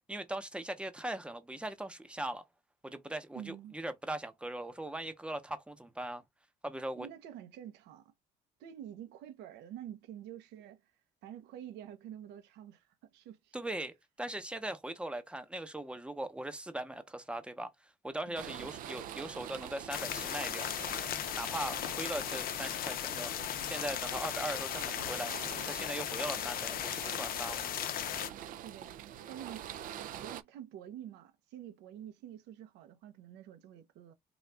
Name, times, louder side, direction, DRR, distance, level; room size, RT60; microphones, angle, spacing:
voice 1, 0.1-2.4 2.8-6.2 6.6-7.1 13.5-20.7 21.4-23.3 23.6-25.4 25.6-27.6, right 1 dB, 5° right, 0.8 m, -40 dB
voice 2, 3.3-3.7 7.0-8.1 8.6-10.9 11.2-13.6 18.3-18.7 28.5-29.7 30.2-34.1, right 10 dB, 85° right, 0.8 m, -48 dB
sound 1, 18.4-30.4, right 10 dB, 55° right, 0.4 m, -46 dB
sound 2, 19.9-28.3, left 11 dB, 60° left, 0.6 m, -37 dB
4.0 x 2.3 x 3.4 m
cardioid pair, 110°, 17 cm